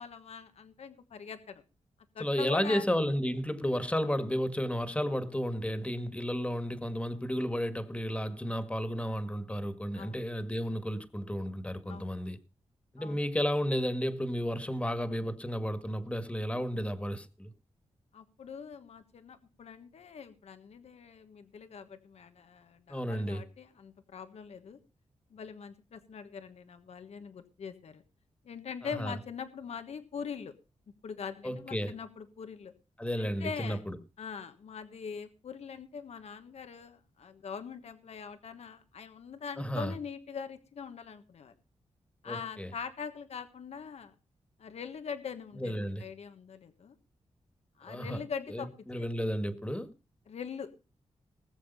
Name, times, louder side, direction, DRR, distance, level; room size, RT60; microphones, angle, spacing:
voice 1, 0.0-1.6 2.1-2.8 10.0-10.3 11.9-12.1 13.0-13.3 18.1-24.8 25.3-28.0 28.4-30.5 31.0-32.7 33.2-33.8 34.2-41.5 42.2-44.1 44.6-47.0 47.8-48.7 49.0-49.1 50.3-50.7, left 6 dB, 75° left, 1.4 m, -42 dB
voice 2, 2.2-12.4 12.9-17.5 22.9-23.4 28.8-29.2 31.4-31.9 33.0-34.0 39.6-39.9 42.3-42.7 45.6-46.0 47.9-48.2 48.5-49.9, equal, 10° left, 1.8 m, -32 dB
19.5 x 7.3 x 5.5 m
cardioid pair, 80°, 11 cm